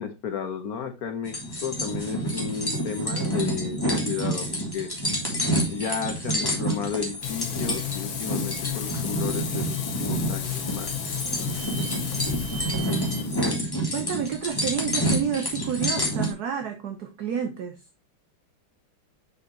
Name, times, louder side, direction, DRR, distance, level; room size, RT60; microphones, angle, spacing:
voice 1, 0.0-1.4 1.6-4.5 4.7-4.9 5.7-10.9, left 7 dB, 55° left, 7 dB, 1.2 m, -33 dB
sound 1, 1.2-16.3, right 1 dB, 10° left, 1.9 m, -28 dB
Frying (food), 7.2-13.6, left 8 dB, 85° left, 1.9 m, -32 dB
sound 2, 10.6-13.2, right 7 dB, 85° right, 2.9 m, -43 dB
voice 2, 13.9-17.8, right 8 dB, 60° right, 6 dB, 1.1 m, -30 dB
6.4 x 5.6 x 2.9 m, 0.26 s
omnidirectional pair, 2.2 m